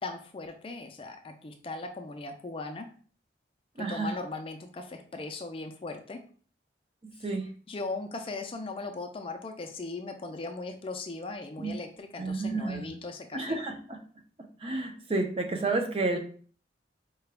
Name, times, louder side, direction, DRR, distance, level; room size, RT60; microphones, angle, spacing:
voice 1, 0.0-2.9 3.8-6.2 7.2-7.3 7.7-13.6, left 3 dB, 30° left, 5 dB, 0.4 m, -38 dB
voice 2, 3.8-4.2 7.0-7.5 11.6-11.8 12.2-12.9 13.3-14.0 14.6-16.2, right 3 dB, 35° right, 3 dB, 0.5 m, -31 dB
4.7 x 2.2 x 3.3 m, 0.43 s
head